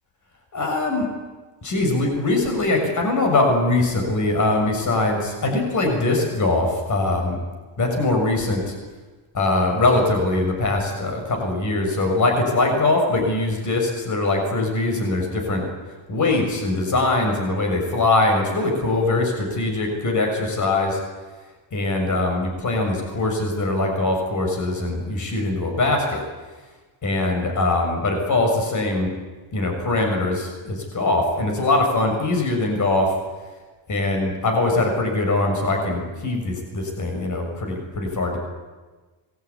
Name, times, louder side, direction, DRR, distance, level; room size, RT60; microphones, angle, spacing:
voice 1, 0.5-1.1 1.6-7.4 7.8-8.7 9.3-15.7 16.1-21.0 21.7-26.2 27.0-29.1 29.5-33.1 33.9-38.4, left 2 dB, 35° left, 3 dB, 6.7 m, -22 dB
26.5 x 21.5 x 9.8 m, 1.3 s
cardioid pair, 180°, 49 cm